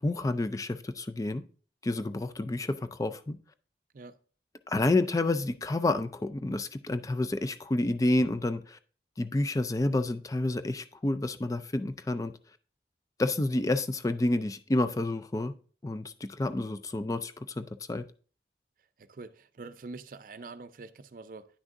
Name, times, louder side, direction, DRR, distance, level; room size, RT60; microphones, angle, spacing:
voice 1, 0.0-1.4 1.8-3.4 4.7-8.8 9.2-12.3 13.2-15.5 15.8-18.0, left 2 dB, 20° left, 0.3 m, -29 dB
voice 2, 19.0-21.5, right 3 dB, 50° right, 0.4 m, -45 dB
9.8 x 6.1 x 2.6 m
head